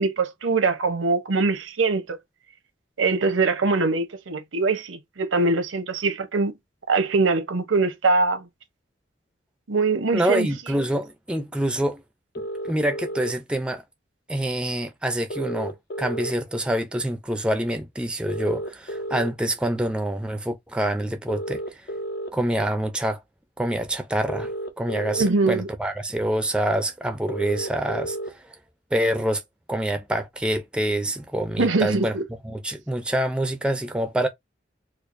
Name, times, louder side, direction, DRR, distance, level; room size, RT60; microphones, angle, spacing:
voice 1, 0.0-2.2 3.0-6.5 6.9-8.5 9.7-10.5 25.2-25.7 31.6-32.2, right 3 dB, 90° right, 0.8 m, -22 dB
voice 2, 10.1-12.0 12.6-13.8 14.3-21.9 22.3-23.2 23.6-28.5 28.9-29.4 29.7-34.3, right 1 dB, 5° right, 0.4 m, -26 dB
sound 1, 12.3-13.3 15.3-16.3 18.3-19.3 21.3-22.3 24.3-25.3 27.3-28.3, right 1 dB, 50° left, 0.5 m, -32 dB
4.4 x 2.4 x 2.5 m
head